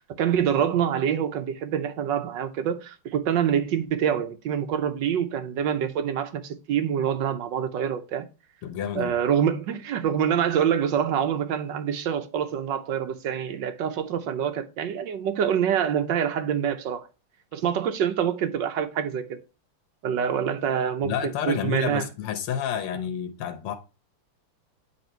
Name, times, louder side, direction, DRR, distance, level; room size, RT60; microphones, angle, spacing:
voice 1, 0.2-8.3 8.9-17.1 17.5-19.4 20.0-21.1 21.5-22.0, right 8 dB, 65° right, 1.4 m, -26 dB
voice 2, 8.6-9.1 21.0-23.8, left 9 dB, 85° left, 1.9 m, -30 dB
9.9 x 3.7 x 4.4 m
omnidirectional pair, 2.3 m